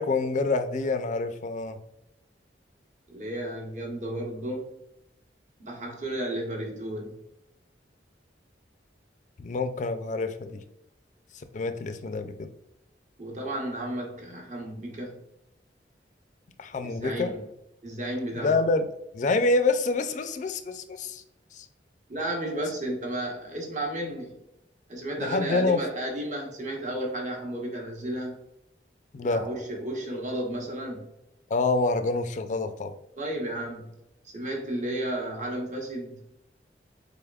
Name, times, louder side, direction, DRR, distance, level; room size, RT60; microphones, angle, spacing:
voice 1, 0.0-1.8 9.4-10.5 11.3-12.5 16.6-17.3 18.4-18.9 19.1-21.2 21.5-21.7 25.2-25.8 29.1-29.5 31.5-32.9, left 3 dB, 40° left, 9 dB, 0.3 m, -27 dB
voice 2, 3.1-4.8 5.6-7.1 13.2-15.2 16.8-17.4 17.8-18.7 22.1-24.4 24.9-28.4 29.3-31.1 33.2-33.9 34.2-36.2, right 1 dB, 40° right, 0 dB, 1.0 m, -33 dB
4.0 x 3.4 x 2.3 m, 0.86 s
head